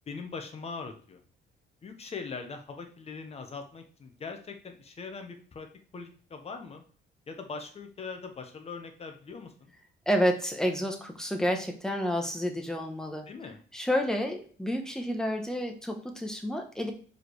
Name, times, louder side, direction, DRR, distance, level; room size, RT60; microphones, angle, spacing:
voice 1, 0.1-1.2 1.8-5.7 5.9-6.8 7.3-9.7 13.3-13.6, left 4 dB, 35° left, 5 dB, 1.2 m, -41 dB
voice 2, 10.1-13.3 13.7-16.9, equal, 5° left, 3 dB, 1.1 m, -29 dB
5.0 x 4.8 x 4.7 m, 0.43 s
cardioid pair, 145°, 19 cm